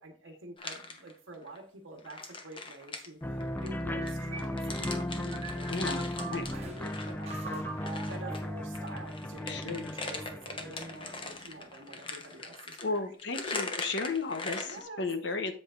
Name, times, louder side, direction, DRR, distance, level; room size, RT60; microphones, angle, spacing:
voice 1, 0.0-7.7 8.1-13.1 14.6-15.1, right 1 dB, 75° right, 2 dB, 1.2 m, -47 dB
sound 1, 0.6-1.6 2.0-8.5 8.7-14.8, left 3 dB, 25° left, 0.9 m, -41 dB
sound 2, 3.2-11.6, left 1 dB, 10° left, 0.4 m, -36 dB
sound 3, 3.9-6.8 7.3-9.0, right 4 dB, 30° right, 0.9 m, -44 dB
voice 2, 5.7-6.0 6.3-6.4 9.5-9.9 12.8-15.5, left 3 dB, 60° left, 7 dB, 0.9 m, -34 dB
7.8 x 7.7 x 2.5 m, 0.43 s
head